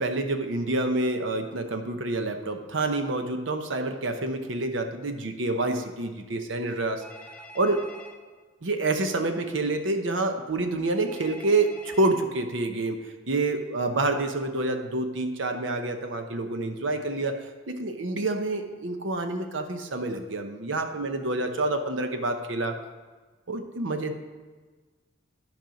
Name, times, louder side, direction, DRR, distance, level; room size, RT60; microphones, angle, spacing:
voice 1, 0.0-7.0 7.6-7.8 8.6-13.0 13.3-22.8 23.5-24.1, right 2 dB, 70° right, 6 dB, 0.8 m, -28 dB
Telephone, 7.0-8.1 11.1-12.1, equal, 5° left, 1.0 m, -46 dB
10.5 x 5.3 x 5.2 m, 1.4 s
head